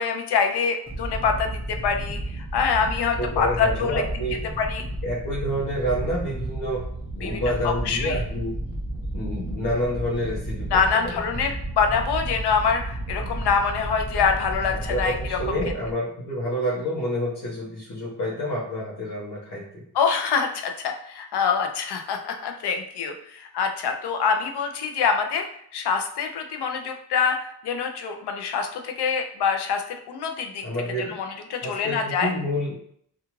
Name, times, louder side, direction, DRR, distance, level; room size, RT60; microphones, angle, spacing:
voice 1, 0.0-4.0 4.6-4.8 7.2-8.2 10.7-15.4 19.9-30.6 31.0-32.3, left 6 dB, 80° left, 4 dB, 0.5 m, -25 dB
sound 1, 0.9-15.9, right 1 dB, 5° right, 0.7 m, -32 dB
voice 2, 3.2-4.4 5.0-6.8 7.2-8.5 9.1-11.1 14.7-19.8 30.6-31.1 31.6-32.7, equal, 55° left, -7 dB, 0.9 m, -28 dB
2.4 x 2.4 x 3.0 m, 0.67 s
wide cardioid pair, 160°, 40 cm